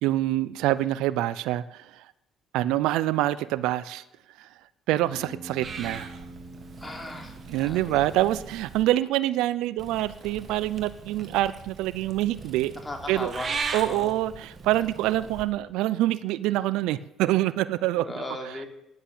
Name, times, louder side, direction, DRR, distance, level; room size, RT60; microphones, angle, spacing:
voice 1, 0.0-2.0 2.5-4.0 4.4-4.5 4.9-6.2 7.5-12.7 13.1-13.3 13.7-18.2, right 15 dB, 85° right, 17 dB, 0.5 m, -26 dB
Bass guitar, 5.1-9.4, right 1 dB, 10° right, 5.4 m, -47 dB
Purr / Meow, 5.6-8.8 9.8-15.4, right 5 dB, 40° right, 1.9 m, -39 dB
voice 2, 6.8-8.0 12.8-13.5 13.8-14.1 17.9-18.7, left 2 dB, 20° left, 3 dB, 3.5 m, -37 dB
11.5 x 10.5 x 8.1 m, 0.88 s
supercardioid pair, 85°, 0 cm